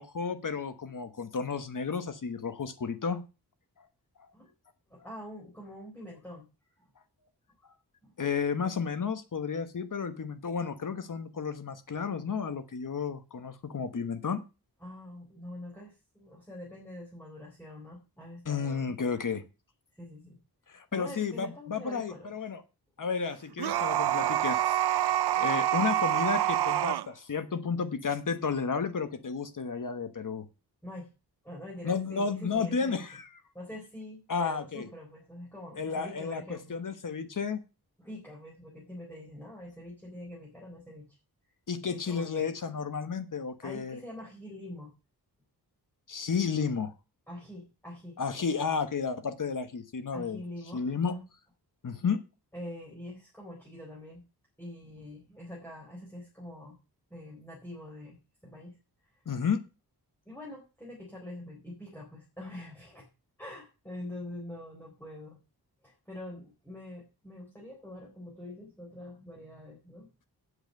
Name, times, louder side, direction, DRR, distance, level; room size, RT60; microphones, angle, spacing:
voice 1, 0.0-3.2 8.2-14.4 18.4-19.4 20.7-22.6 23.0-24.6 25.3-30.4 31.8-33.3 34.3-34.9 35.7-37.6 41.7-44.0 46.1-46.9 48.2-50.4 50.7-51.2 51.8-52.2 59.2-59.6, left 5 dB, 50° left, 10 dB, 1.3 m, -32 dB
voice 2, 4.9-6.5 8.0-8.1 14.8-18.9 20.0-20.4 20.7-22.3 30.8-31.1 31.4-33.0 33.5-36.8 38.0-41.0 41.9-42.5 43.6-44.9 47.3-48.2 50.1-51.2 52.5-54.2 54.6-56.8 57.1-58.8 60.3-63.1 63.4-65.4 65.8-70.3, left 1 dB, 5° left, -3 dB, 3.9 m, -45 dB
sound 1, 23.6-27.1, right 12 dB, 80° right, 0.5 m, -27 dB
8.1 x 7.4 x 7.7 m, 0.30 s
wide cardioid pair, 155°, 39 cm